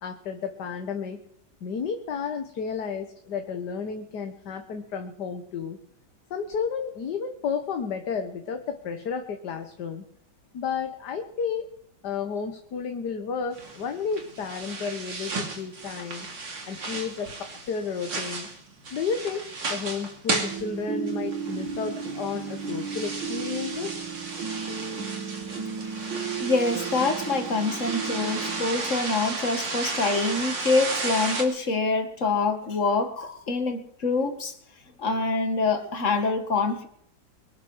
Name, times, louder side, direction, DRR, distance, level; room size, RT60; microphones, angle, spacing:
voice 1, 0.0-1.2 1.6-5.8 6.3-10.1 10.5-11.7 12.0-16.3 16.7-18.5 18.9-23.9, left 6 dB, 60° left, 5 dB, 1.7 m, -32 dB
sound 1, 13.5-31.4, right 3 dB, 70° right, 3.5 m, -34 dB
sound 2, 20.4-28.7, right 6 dB, 90° right, 3.0 m, -34 dB
voice 2, 26.4-34.5 35.0-36.9, left 3 dB, 40° left, 7 dB, 1.9 m, -25 dB
23.0 x 9.2 x 6.4 m, 0.66 s
omnidirectional pair, 2.1 m